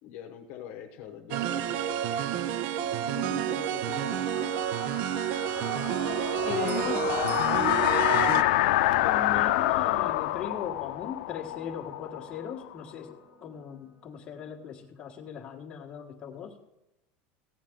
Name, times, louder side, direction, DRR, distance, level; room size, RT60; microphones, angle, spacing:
voice 1, 0.0-5.0 5.7-5.9 6.3-7.4, left 9 dB, 45° left, 3 dB, 1.0 m, -44 dB
sound 1, 1.3-8.4, right 11 dB, 40° right, 0.4 m, -30 dB
sound 2, 2.3-15.3, left 1 dB, 15° right, 1.6 m, -53 dB
sound 3, 4.0-12.7, left 15 dB, 75° left, 0.5 m, -27 dB
voice 2, 6.4-7.1 9.0-16.6, left 7 dB, 20° left, -1 dB, 1.5 m, -38 dB
15.5 x 9.2 x 3.7 m, 0.91 s
cardioid pair, 175°, 5 cm